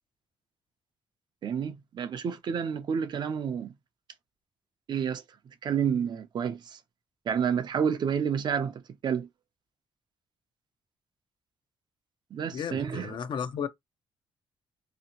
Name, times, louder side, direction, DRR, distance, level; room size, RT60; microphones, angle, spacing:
voice 1, 1.4-3.7 4.9-5.2 5.6-6.8 7.3-9.3 12.3-13.2, right 7 dB, 50° right, 0.5 m, -29 dB
voice 2, 12.5-13.7, left 8 dB, 55° left, 0.5 m, -33 dB
2.8 x 2.4 x 2.8 m
cardioid pair, 140°, 10 cm